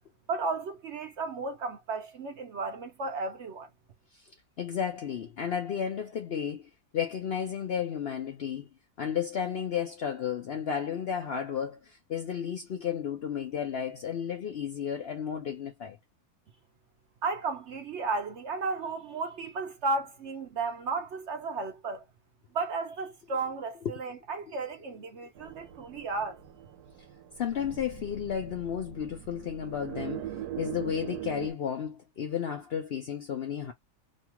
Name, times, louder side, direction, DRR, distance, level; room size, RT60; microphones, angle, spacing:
voice 1, 0.3-3.7 17.2-22.0 22.5-26.4, right 3 dB, 60° right, 0.8 m, -34 dB
voice 2, 4.6-8.7 9.0-16.0 23.8-23.9 27.4-30.3 30.6-33.7, left 8 dB, 60° left, 0.6 m, -33 dB
sound 1, 25.4-31.5, right 10 dB, 85° right, 1.2 m, -41 dB
2.9 x 2.4 x 2.8 m
omnidirectional pair, 1.6 m